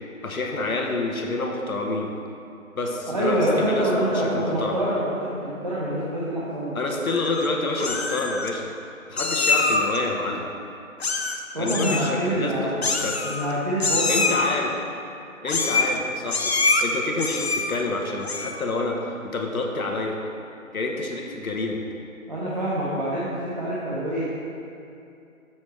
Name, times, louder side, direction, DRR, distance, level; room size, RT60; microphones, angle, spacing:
voice 1, 0.2-2.1 2.7-4.8 6.7-8.7 9.1-10.5 11.5-13.2 14.1-14.7 15.4-16.5 16.8-20.2 20.7-21.8, left 2 dB, 90° left, 1 dB, 1.1 m, -28 dB
voice 2, 3.1-6.7 11.5-12.7 13.2-14.4 22.3-24.2, right 1 dB, 30° right, -9 dB, 0.8 m, -26 dB
Meow, 7.1-7.5 7.8-8.5 9.2-10.0 11.0-11.4 11.7-12.1 12.8-13.5 13.8-14.5 15.5-16.0 16.3-16.8 17.2-17.8 18.2-18.6, left 3 dB, 50° left, 0.5 m, -24 dB
7.0 x 6.2 x 3.3 m, 2.6 s
figure-of-eight pair, 170°, 42 cm